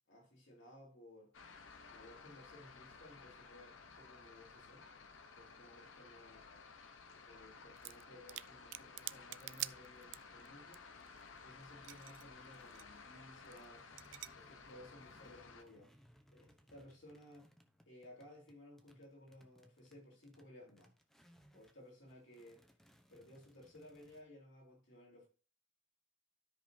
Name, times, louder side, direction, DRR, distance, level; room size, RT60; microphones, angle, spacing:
voice 1, 0.1-1.3 1.9-4.9 5.3-6.4 7.2-10.8 11.3-13.9 14.3-15.9 16.3-17.5 17.9-20.9 21.5-22.6 23.1-25.3, left 1 dB, 70° left, 3.6 m, -58 dB
sound 1, 1.3-15.6, left 4 dB, 90° left, 1.0 m, -56 dB
sound 2, 7.8-8.0 8.3-10.5 10.7-10.8 11.0-12.2 12.5-12.8 13.5-13.7 14.0-14.3, right 17 dB, 75° right, 0.4 m, -45 dB
sound 3, 13.7-21.8 22.1-24.2, equal, ahead, 0.9 m, -68 dB
13.0 x 5.3 x 2.8 m
head